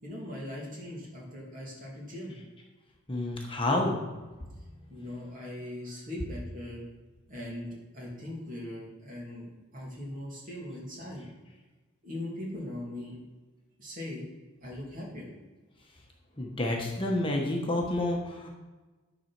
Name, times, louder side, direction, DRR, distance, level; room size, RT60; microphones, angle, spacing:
voice 1, 0.0-2.4 4.9-6.8 7.3-11.3 12.0-13.1 13.8-14.3 14.6-15.3, left 1 dB, 40° right, -3 dB, 2.7 m, -40 dB
voice 2, 3.1-4.0 16.4-18.5, left 1 dB, 25° left, 0 dB, 1.1 m, -29 dB
11.0 x 4.2 x 5.9 m, 1.2 s
head